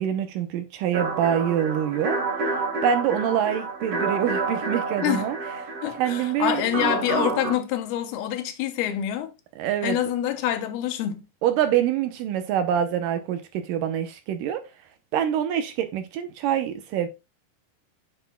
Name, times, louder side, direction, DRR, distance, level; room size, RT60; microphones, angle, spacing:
voice 1, 0.0-2.6 2.8-5.4 5.9-6.8 9.6-10.0 11.4-14.6 15.1-17.1, right 9 dB, 75° right, 2.1 m, -25 dB
sound 1, 0.9-7.5, right 4 dB, 50° right, 2.1 m, -29 dB
voice 2, 5.8-9.3 9.8-11.2, left 11 dB, 85° left, 2.9 m, -26 dB
9.6 x 6.0 x 2.2 m
omnidirectional pair, 4.3 m